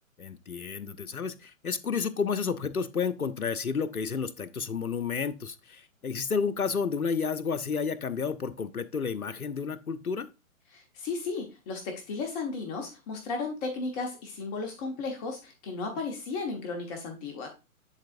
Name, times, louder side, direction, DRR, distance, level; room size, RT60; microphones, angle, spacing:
voice 1, 0.2-10.3, left 6 dB, 85° left, 0.7 m, -31 dB
voice 2, 10.7-17.5, left 4 dB, 30° left, 1.3 m, -34 dB
10.5 x 4.2 x 2.5 m
figure-of-eight pair, 120°, 42 cm